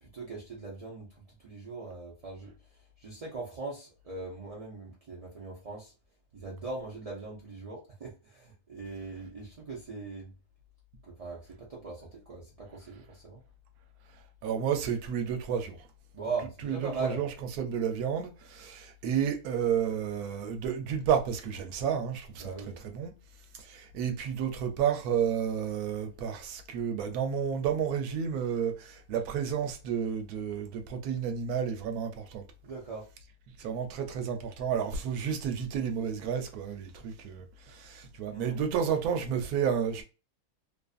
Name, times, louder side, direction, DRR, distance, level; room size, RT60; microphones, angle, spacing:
voice 1, 0.0-2.5 3.0-5.9 6.3-10.3 11.0-13.4 16.1-17.2 22.4-22.9 32.6-33.1 38.3-38.6, right 3 dB, 65° right, 0.3 m, -40 dB
voice 2, 14.4-15.8 16.6-17.3 17.6-22.5 22.8-23.1 23.7-32.4 33.6-40.0, right 8 dB, 85° right, 1.1 m, -31 dB
2.5 x 2.5 x 2.3 m
omnidirectional pair, 1.5 m